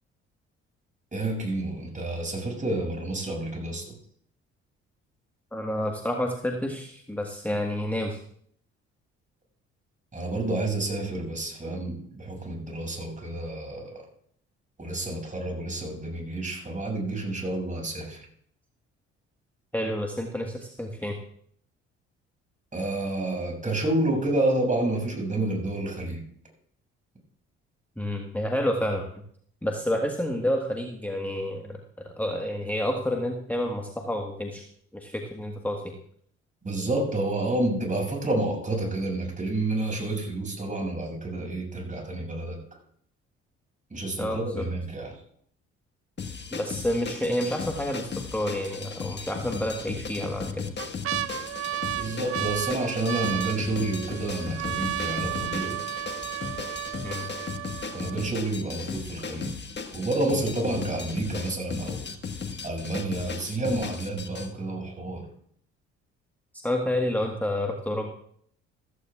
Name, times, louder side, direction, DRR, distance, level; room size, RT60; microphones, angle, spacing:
voice 1, 1.1-3.9 10.1-13.9 14.8-18.3 22.7-26.2 36.6-42.6 43.9-45.2 51.9-55.8 57.9-59.6 59.9-62.1 62.6-65.3, right 2 dB, 25° right, 0 dB, 6.5 m, -29 dB
voice 2, 5.5-8.2 19.7-21.2 28.0-29.1 29.6-31.8 32.0-34.6 34.9-35.9 44.2-44.6 46.5-50.7 57.0-57.3 66.6-68.1, left 1 dB, 5° left, 2 dB, 1.5 m, -29 dB
sound 1, 46.2-64.5, left 5 dB, 35° left, 1.5 m, -36 dB
sound 2, 47.8-48.1 48.5-48.6 49.6-50.1 50.5-58.5 59.2-59.3 59.5-60.0 60.4-60.5, right 15 dB, 45° right, 0.4 m, -34 dB
15.5 x 14.5 x 2.4 m, 0.64 s
hypercardioid pair, 50°, 33 cm